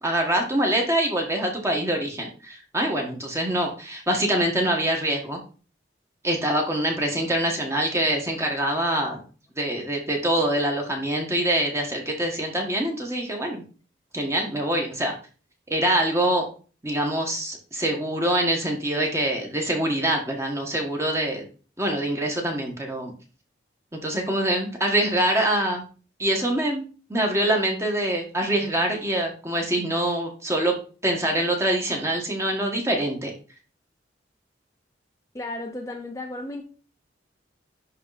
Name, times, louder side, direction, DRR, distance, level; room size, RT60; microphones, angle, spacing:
voice 1, 0.0-5.4 6.2-9.2 9.6-13.6 14.1-15.1 15.7-16.4 16.8-21.4 21.8-23.1 24.0-25.8 26.2-26.8 27.1-30.7 31.0-33.3, right 1 dB, 15° right, 1 dB, 1.6 m, -24 dB
voice 2, 35.3-36.6, left 2 dB, 15° left, 2 dB, 0.7 m, -34 dB
10.5 x 3.7 x 4.2 m, 0.37 s
head